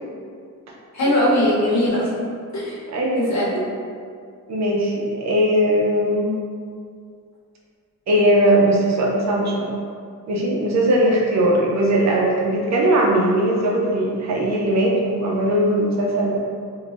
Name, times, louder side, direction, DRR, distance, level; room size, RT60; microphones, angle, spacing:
voice 1, 0.9-2.2 2.5-2.8 3.1-3.6, left 1 dB, 55° left, -6 dB, 0.8 m, -20 dB
voice 2, 2.9-3.6 4.5-6.3 8.1-9.7 10.3-16.4, right 1 dB, 55° right, -3 dB, 0.5 m, -19 dB
2.6 x 2.1 x 3.2 m, 2.2 s
wide cardioid pair, 160°, 33 cm